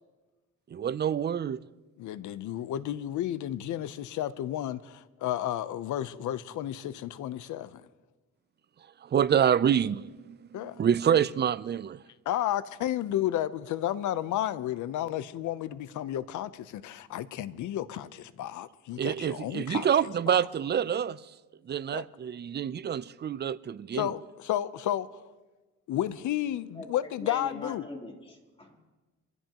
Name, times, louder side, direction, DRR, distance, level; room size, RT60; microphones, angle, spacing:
voice 1, 0.7-1.6 9.0-12.0 19.0-21.2 21.7-24.1, right 8 dB, 35° right, 0.5 m, -27 dB
voice 2, 2.0-7.8 10.5-10.8 12.3-19.9 20.3-20.4 21.9-22.0 23.9-25.2 25.9-27.9, left 12 dB, 75° left, 0.8 m, -32 dB
voice 3, 26.7-28.8, left 2 dB, 20° left, 3.4 m, -42 dB
25.0 x 15.5 x 3.0 m
cardioid pair, 90°, 30 cm